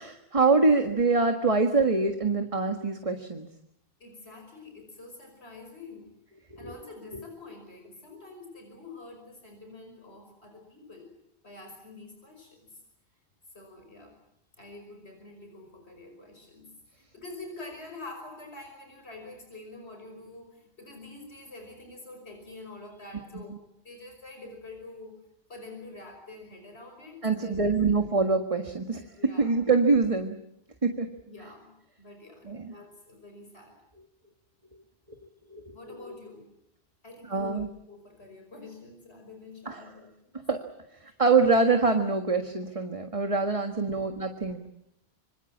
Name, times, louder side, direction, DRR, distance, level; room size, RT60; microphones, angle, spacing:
voice 1, 0.0-3.5 6.6-6.7 7.1-7.3 23.3-23.4 27.2-30.4 30.8-31.1 32.4-32.7 35.5-36.1 37.3-37.7 39.6-39.9 40.3-40.6 41.2-44.6, right 4 dB, 30° right, 5 dB, 1.7 m, -25 dB
voice 2, 4.0-6.1 6.6-11.1 11.4-12.8 13.5-14.1 14.6-16.7 17.1-23.6 23.8-25.2 25.5-27.7 29.2-29.5 31.3-31.7 32.0-33.7 35.7-36.5 37.0-37.6 37.9-40.3 41.1-41.2 43.7-44.1, left 2 dB, 80° left, 3 dB, 5.7 m, -46 dB
26.5 x 26.0 x 7.4 m, 0.80 s
omnidirectional pair, 1.1 m